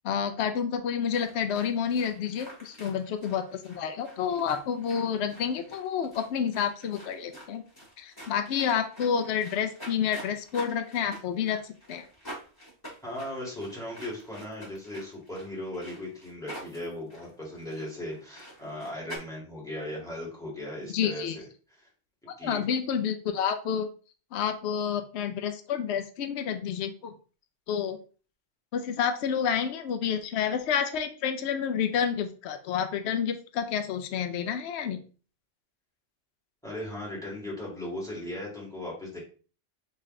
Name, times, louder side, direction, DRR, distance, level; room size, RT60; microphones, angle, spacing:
voice 1, 0.0-7.6 8.0-12.1 20.9-21.4 22.4-23.9 24.3-27.1 27.7-28.0 28.7-35.0, left 7 dB, 70° left, 7 dB, 0.8 m, -29 dB
sound 1, 1.1-19.2, right 1 dB, 20° left, 1.8 m, -47 dB
voice 2, 13.0-21.5 22.4-22.6 36.6-39.2, left 1 dB, 5° left, -4 dB, 1.9 m, -37 dB
4.0 x 3.3 x 3.7 m, 0.38 s
omnidirectional pair, 1.2 m